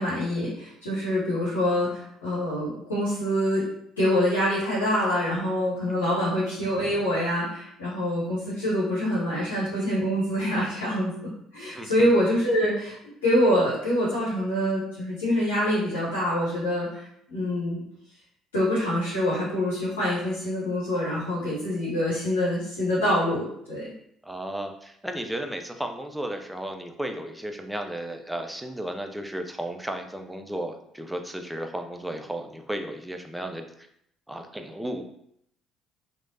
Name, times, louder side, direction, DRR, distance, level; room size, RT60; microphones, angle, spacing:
voice 1, 0.0-3.6 4.0-13.0 13.2-17.8 18.5-23.9, equal, 85° left, -8 dB, 0.8 m, -25 dB
voice 2, 5.9-6.4 11.6-12.1 24.2-33.9 34.3-35.1, right 1 dB, 5° right, 5 dB, 0.4 m, -34 dB
3.1 x 2.1 x 2.6 m, 0.73 s
hypercardioid pair, 55°, 0 cm